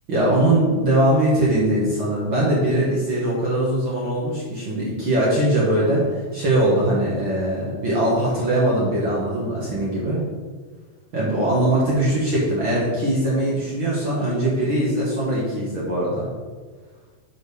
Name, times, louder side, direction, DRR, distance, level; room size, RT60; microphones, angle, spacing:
voice 1, 0.1-6.0 6.3-10.2 11.1-16.3, right 1 dB, 70° right, -6 dB, 1.1 m, -21 dB
7.5 x 5.1 x 4.7 m, 1.5 s
omnidirectional pair, 4.4 m